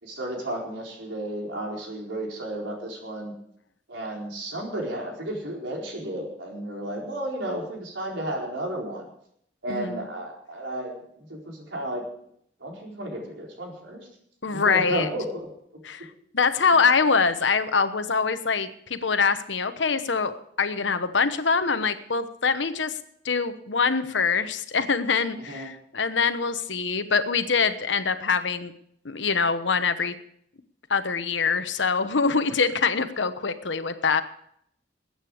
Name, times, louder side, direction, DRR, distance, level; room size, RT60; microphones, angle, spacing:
voice 1, 0.0-3.3 3.9-9.1 9.6-12.0 12.6-14.1 14.5-15.5 25.3-25.7, right 1 dB, 90° right, -1 dB, 4.4 m, -33 dB
voice 2, 9.7-10.1 14.4-15.1 15.8-16.1 16.3-23.0 23.2-28.7 29.0-30.1 30.9-34.2, left 5 dB, 80° left, 10 dB, 1.1 m, -24 dB
20.5 x 9.0 x 5.0 m, 0.69 s
head